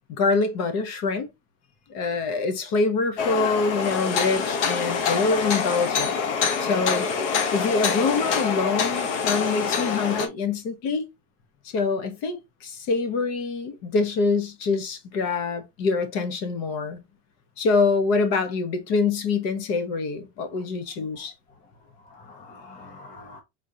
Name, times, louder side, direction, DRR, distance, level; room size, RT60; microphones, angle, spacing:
voice 1, 0.2-1.3 1.9-6.1 6.6-11.1 11.6-17.0 17.6-21.3, left 4 dB, 45° left, 1.1 m, -25 dB
sound 1, 3.2-10.3, left 6 dB, 90° left, 1.1 m, -25 dB
voice 2, 21.1-23.4, left 3 dB, 20° left, 0.6 m, -48 dB
4.9 x 3.8 x 2.8 m
supercardioid pair, 155°, 35 cm